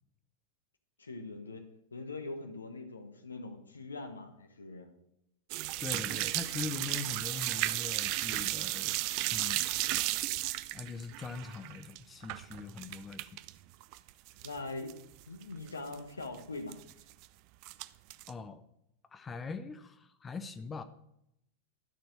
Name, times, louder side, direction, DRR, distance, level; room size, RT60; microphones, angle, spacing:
voice 1, 1.0-1.6 1.9-4.9 14.4-14.9 15.3-16.8, left 3 dB, 75° left, 6 dB, 1.2 m, -42 dB
sound 1, 5.5-13.5 13.8-14.6 14.9-15.0 15.4-15.5 15.7-15.9 16.7-17.2 17.6-18.3, right 17 dB, 45° right, 0.4 m, -34 dB
voice 2, 5.8-10.0 10.7-13.3 18.3-18.6 19.1-20.8, left 4 dB, 15° left, 10 dB, 0.6 m, -42 dB
12.5 x 4.4 x 6.6 m, 0.79 s
figure-of-eight pair, 90°, 0 cm